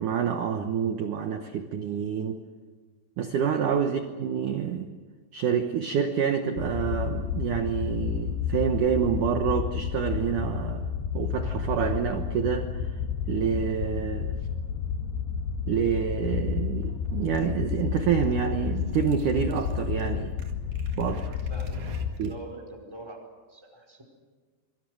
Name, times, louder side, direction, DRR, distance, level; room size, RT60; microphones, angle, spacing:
voice 1, 0.0-2.4 3.2-4.9 5.3-10.9 11.1-12.7 13.3-14.3 15.7-20.3 21.0-21.4 22.2-22.3, right 7 dB, 80° right, 6 dB, 1.8 m, -27 dB
sound 1, 6.6-22.1, left 7 dB, 75° left, 3.1 m, -31 dB
sound 2, 16.1-22.5, right 2 dB, 50° right, 2.8 m, -50 dB
voice 2, 21.5-22.0 22.3-24.0, right 2 dB, 5° right, 0 dB, 4.1 m, -44 dB
27.0 x 23.5 x 6.4 m, 1.5 s
omnidirectional pair, 5.5 m